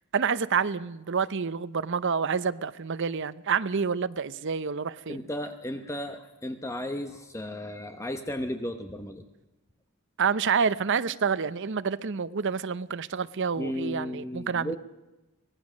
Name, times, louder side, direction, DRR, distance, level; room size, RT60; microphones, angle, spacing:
voice 1, 0.1-5.2 10.2-14.8, right 6 dB, 60° right, 0.7 m, -28 dB
voice 2, 5.1-9.2 13.6-14.8, left 1 dB, 15° left, 1.0 m, -34 dB
25.0 x 18.5 x 6.3 m
head